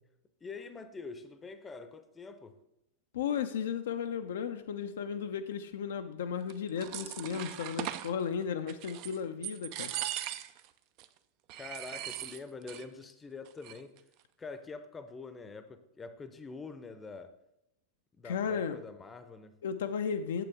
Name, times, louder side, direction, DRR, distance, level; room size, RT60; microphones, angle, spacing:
voice 1, 0.4-2.6 11.6-13.9 14.4-17.3 18.2-19.5, left 4 dB, 15° left, 0.6 m, -45 dB
voice 2, 3.1-9.9 18.2-18.8 19.6-20.4, left 7 dB, 60° left, 0.4 m, -34 dB
sound 1, 6.5-8.1 8.7-9.2 9.4-10.7 11.0-11.1 11.5-12.8 13.1-13.2 13.5-14.0, right 13 dB, 45° right, 0.4 m, -39 dB
9.0 x 7.5 x 3.6 m
figure-of-eight pair, 90°, 0 cm